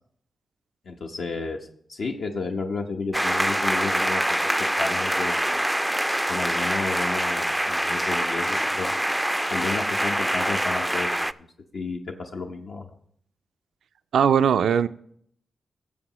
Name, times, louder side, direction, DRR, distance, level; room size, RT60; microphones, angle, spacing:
voice 1, 0.9-4.4 4.8-5.5 6.3-8.9 9.5-11.3 11.7-12.9, left 4 dB, 70° left, 1 dB, 0.8 m, -32 dB
sound 1, 3.1-11.3, right 1 dB, 5° right, 0.3 m, -25 dB
voice 2, 14.1-14.9, right 8 dB, 85° right, 13 dB, 0.3 m, -19 dB
16.0 x 7.3 x 3.0 m, 0.66 s
cardioid pair, 50°, 0 cm